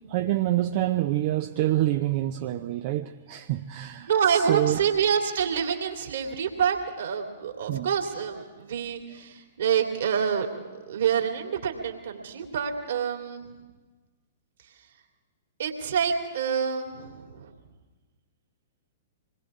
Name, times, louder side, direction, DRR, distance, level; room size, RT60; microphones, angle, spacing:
voice 1, 0.1-4.8 7.7-7.9, right 14 dB, 45° right, 0.8 m, -27 dB
voice 2, 4.1-10.5 10.9-13.5 15.6-17.5, right 7 dB, 60° right, 2.8 m, -27 dB
26.5 x 20.5 x 4.9 m
figure-of-eight pair, 110°, 0 cm